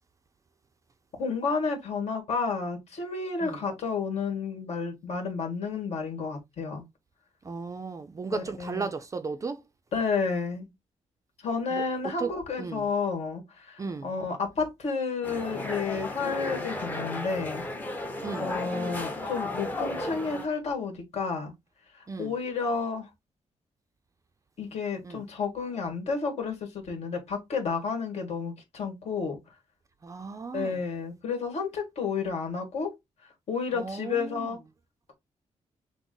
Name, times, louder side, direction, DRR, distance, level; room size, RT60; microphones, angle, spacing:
voice 1, 1.2-6.8 8.3-8.9 9.9-10.7 11.4-17.6 18.4-21.5 22.2-23.1 24.6-29.4 30.5-32.9 33.5-34.6, left 5 dB, 60° left, 1.6 m, -31 dB
voice 2, 7.4-9.6 11.7-11.8 12.2-12.3 12.6-12.8 13.8-14.1 18.2-18.5 22.1-22.3 25.0-25.2 30.0-30.8 33.7-34.6, right 4 dB, 25° right, 0.4 m, -35 dB
sound 1, 15.2-20.5, left 2 dB, 15° left, 0.7 m, -34 dB
6.0 x 2.0 x 3.7 m
wide cardioid pair, 170°, 12 cm